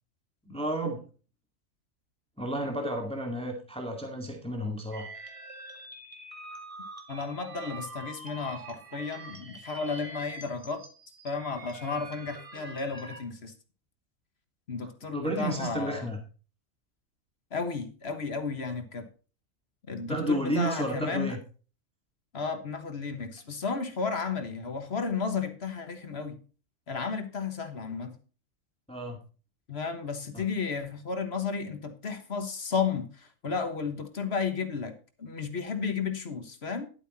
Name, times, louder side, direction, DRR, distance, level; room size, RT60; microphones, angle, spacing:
voice 1, 0.5-1.0 2.4-5.1 15.1-16.2 20.1-21.4 28.9-29.2 30.3-30.4, right 1 dB, 5° left, 2 dB, 2.0 m, -31 dB
sound 1, 4.9-13.2, right 2 dB, 25° right, 2.1 m, -45 dB
voice 2, 7.1-10.8 11.2-13.5 14.7-16.1 17.5-19.1 19.9-21.4 22.3-26.4 26.9-28.2 29.7-34.9 35.2-36.9, left 5 dB, 50° left, 8 dB, 1.6 m, -33 dB
11.5 x 8.1 x 4.2 m, 0.37 s
omnidirectional pair, 1.4 m